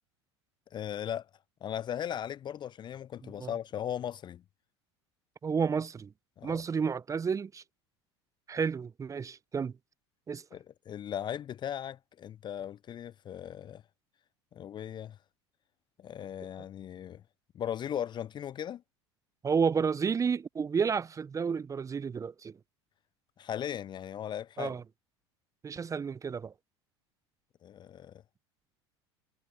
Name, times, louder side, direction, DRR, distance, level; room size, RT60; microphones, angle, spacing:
voice 1, 0.7-1.3 1.6-4.4 6.4-6.6 10.5-13.8 14.5-15.2 16.0-17.2 17.5-18.8 23.4-24.7 27.6-28.2, left 10 dB, 30° left, 0.5 m, -38 dB
voice 2, 5.4-6.1 6.4-7.6 8.5-9.7 10.3-10.4 19.4-22.6 24.6-24.8 25.6-26.5, right 6 dB, 20° right, 0.7 m, -31 dB
hypercardioid pair, 80°, 14 cm